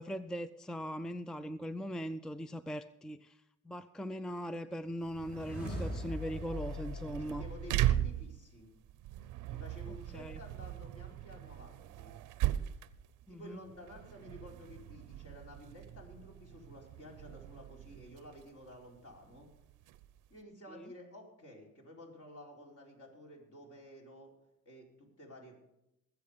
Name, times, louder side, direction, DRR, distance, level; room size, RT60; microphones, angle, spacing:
voice 1, 0.0-3.4 3.6-7.4 10.1-10.4 13.3-13.6 20.7-20.9, equal, ahead, 13 dB, 0.4 m, -40 dB
sound 1, 5.0-8.3, left 1 dB, 30° left, 5.3 m, -42 dB
sound 2, 5.0-20.4, right 13 dB, 90° right, 0.7 m, -39 dB
voice 2, 7.0-8.7 9.5-12.2 13.3-19.5 20.3-24.3 24.6-25.6, left 1 dB, 50° left, -1 dB, 4.5 m, -52 dB
20.0 x 7.8 x 5.1 m, 0.85 s
cardioid pair, 90°, 30 cm